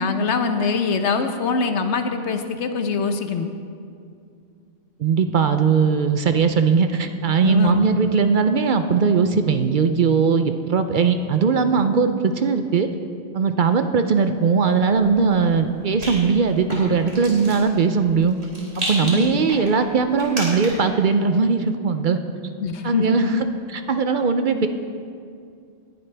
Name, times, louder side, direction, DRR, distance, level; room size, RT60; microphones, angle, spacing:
voice 1, 0.0-3.5 7.4-7.9 19.0-19.4 22.6-23.4, left 5 dB, 85° left, 7 dB, 1.1 m, -23 dB
voice 2, 5.0-12.9 13.3-18.4 18.8-22.2 22.8-24.7, right 5 dB, 55° right, 8 dB, 0.7 m, -19 dB
Rattle, 14.9-21.0, right 1 dB, 70° right, 3.2 m, -34 dB
19.0 x 11.0 x 3.4 m, 2.3 s
omnidirectional pair, 1.1 m